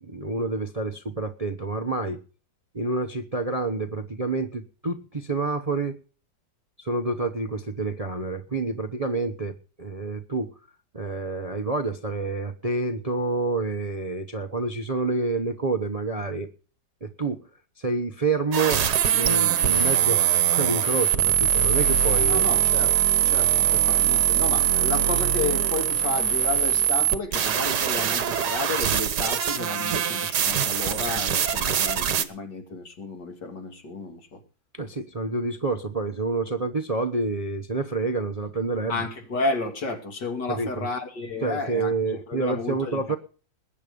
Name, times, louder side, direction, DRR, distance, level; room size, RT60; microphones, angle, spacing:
voice 1, 0.0-2.2 2.7-6.0 6.8-10.5 10.9-16.5 17.0-17.4 17.8-18.8 19.1-22.5 34.7-39.0 40.5-40.9 41.4-43.2, right 3 dB, 30° right, 0.8 m, -28 dB
sound 1, 18.5-32.2, right 9 dB, 65° right, 1.6 m, -22 dB
voice 2, 22.3-34.4 38.9-43.2, left 3 dB, 65° left, 3.1 m, -32 dB
20.5 x 8.6 x 5.3 m
omnidirectional pair, 2.0 m